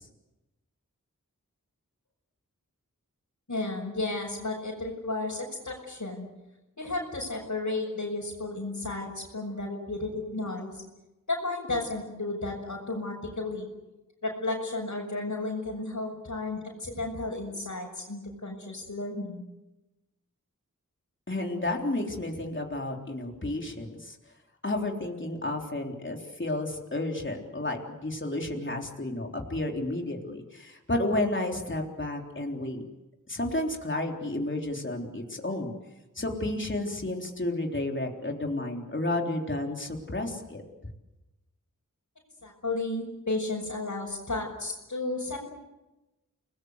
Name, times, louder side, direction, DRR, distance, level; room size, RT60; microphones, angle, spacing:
voice 1, 3.5-6.3 6.8-10.8 11.3-13.7 14.2-19.4 42.4-45.4, left 2 dB, 65° left, -4 dB, 6.0 m, -33 dB
voice 2, 21.3-24.2 24.6-32.8 33.3-35.7 36.2-40.6, left 2 dB, 35° left, 1 dB, 3.7 m, -31 dB
30.0 x 20.0 x 8.2 m, 1.0 s
wide cardioid pair, 50°, 32 cm